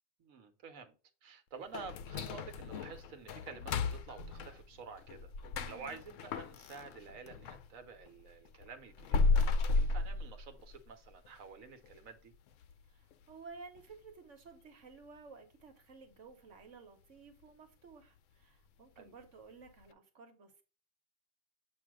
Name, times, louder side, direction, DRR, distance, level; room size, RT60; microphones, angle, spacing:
voice 1, 0.2-5.3 5.6-12.3 19.0-19.1, right 5 dB, 80° right, 1.4 m, -50 dB
sound 1, 1.7-7.7 8.0-10.9 11.2-11.3 11.8-11.9 12.5-12.8 13.1-13.2 13.8-13.9, left 3 dB, 70° left, 0.9 m, -34 dB
voice 2, 5.5-6.0 12.9-20.6, right 4 dB, 65° right, 1.4 m, -54 dB
8.1 x 2.8 x 6.1 m
omnidirectional pair, 1.4 m